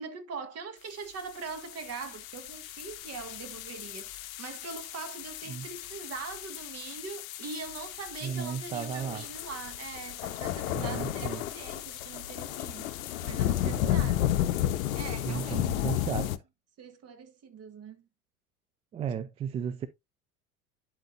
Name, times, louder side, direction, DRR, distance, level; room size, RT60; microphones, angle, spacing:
voice 1, 0.0-14.3 14.9-16.3 16.8-18.0, right 4 dB, 35° right, 1.7 m, -42 dB
sound 1, 1.2-16.4, left 12 dB, 65° left, 0.7 m, -33 dB
voice 2, 8.2-9.3 10.7-11.4 13.6-14.0 15.3-16.4 18.9-19.9, right 7 dB, 15° right, 0.3 m, -34 dB
11.0 x 4.6 x 2.7 m
figure-of-eight pair, 75°, 45 cm